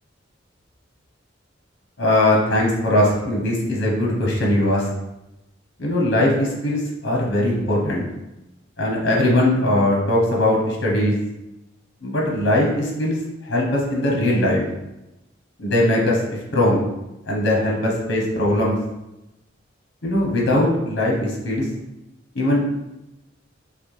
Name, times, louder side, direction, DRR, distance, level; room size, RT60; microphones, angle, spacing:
voice 1, 2.0-4.9 5.8-8.0 8.8-11.2 12.0-13.2 13.4-14.6 15.6-16.2 16.5-16.8 17.3-18.8 20.0-21.7 22.3-22.6, left 1 dB, 60° left, -2 dB, 0.9 m, -20 dB
5.9 x 2.1 x 3.2 m, 0.94 s
head